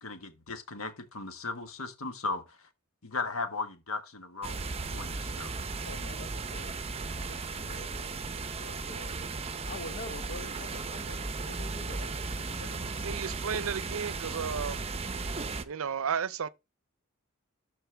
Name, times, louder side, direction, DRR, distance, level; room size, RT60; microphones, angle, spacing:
voice 1, 0.0-2.7 3.0-5.5, left 3 dB, 80° left, 1.5 m, -37 dB
sound 1, 4.4-15.6, right 4 dB, 30° right, 0.7 m, -36 dB
voice 2, 5.8-6.8 7.2-12.9, left 3 dB, 55° left, 0.8 m, -47 dB
voice 3, 13.0-14.9 15.6-16.5, right 6 dB, 80° right, 0.5 m, -33 dB
13.0 x 4.4 x 3.4 m
head